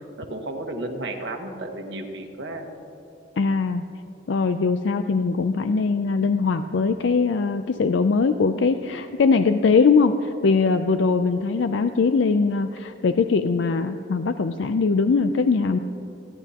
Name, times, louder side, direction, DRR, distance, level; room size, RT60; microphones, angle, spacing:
voice 1, 0.2-2.7, right 2 dB, 75° right, 3 dB, 1.4 m, -33 dB
voice 2, 3.4-3.8 4.3-15.8, left 4 dB, 90° left, 9 dB, 0.4 m, -21 dB
27.5 x 10.0 x 2.9 m, 2.8 s
head